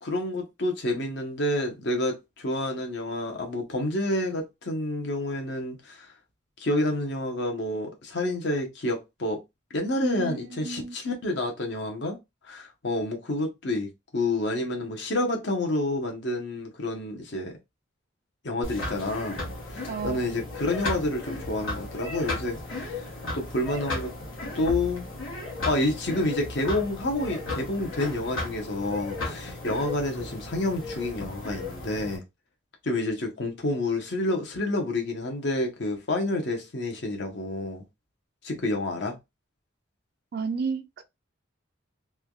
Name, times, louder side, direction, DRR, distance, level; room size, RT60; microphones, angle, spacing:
voice 1, 0.0-6.1 6.6-9.4 9.7-12.2 12.5-17.6 18.4-19.4 19.7-23.1 23.3-24.1 24.5-25.1 25.7-32.2 32.8-37.8 38.4-39.2, left 1 dB, 60° left, 0.8 m, -29 dB
voice 2, 10.0-11.0 19.9-20.2 40.3-41.0, right 4 dB, 50° right, 0.4 m, -32 dB
sound 1, 18.6-32.2, left 2 dB, 85° left, 1.3 m, -35 dB
3.3 x 2.3 x 2.3 m
head